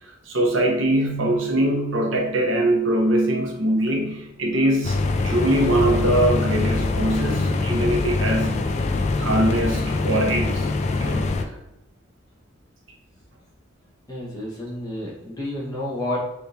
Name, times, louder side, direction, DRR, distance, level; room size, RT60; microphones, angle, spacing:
voice 1, 0.0-8.7 9.2-11.5, right 1 dB, 80° right, 1 dB, 0.8 m, -22 dB
sound 1, 4.8-11.4, left 3 dB, 35° left, 0.3 m, -23 dB
voice 2, 14.1-16.2, left 1 dB, 20° left, -5 dB, 1.3 m, -30 dB
4.4 x 3.6 x 2.7 m, 0.86 s
head